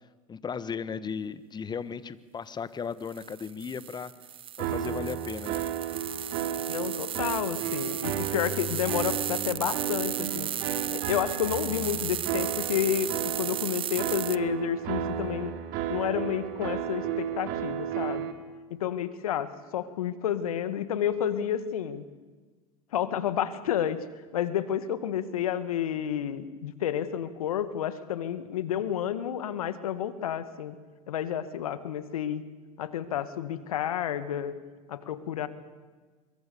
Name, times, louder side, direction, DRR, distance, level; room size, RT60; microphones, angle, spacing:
voice 1, 0.3-4.1 4.6-5.6, left 6 dB, 25° left, 16 dB, 1.3 m, -36 dB
sound 1, 3.1-14.4, right 9 dB, 30° right, 0.8 m, -35 dB
sound 2, 4.6-18.3, right 9 dB, 60° right, 3.0 m, -33 dB
voice 2, 6.7-10.5 10.9-18.3 18.7-22.0 22.9-24.0 24.3-30.8 31.1-32.4 32.8-34.5 34.9-35.5, left 10 dB, 80° left, 13 dB, 1.9 m, -30 dB
24.5 x 23.0 x 7.0 m, 1.3 s
hypercardioid pair, 90°, 18 cm